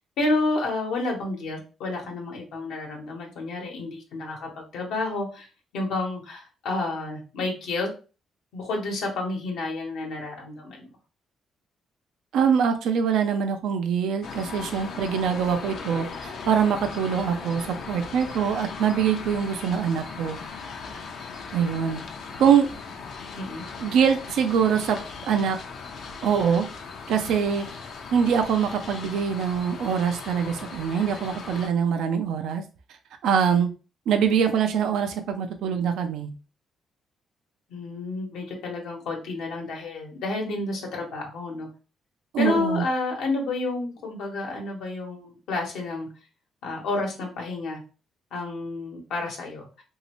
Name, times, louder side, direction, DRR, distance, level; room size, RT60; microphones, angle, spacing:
voice 1, 0.2-5.5 5.7-7.9 8.5-10.9 21.5-21.7 22.3-22.5 23.4-23.6 37.7-41.7 42.4-46.1 46.6-47.8 48.3-49.7, left 2 dB, 85° left, 0 dB, 1.1 m, -30 dB
voice 2, 12.3-20.4 21.5-22.0 22.4-22.7 23.8-25.0 25.3-25.6 26.2-26.7 27.1-27.7 28.1-32.6 33.2-33.7 34.1-36.3 42.3-42.8, right 7 dB, 80° right, 6 dB, 0.4 m, -23 dB
sound 1, 14.2-31.7, left 5 dB, 70° left, 0.6 m, -38 dB
3.1 x 2.7 x 2.9 m, 0.35 s
cardioid pair, 90°, 0 cm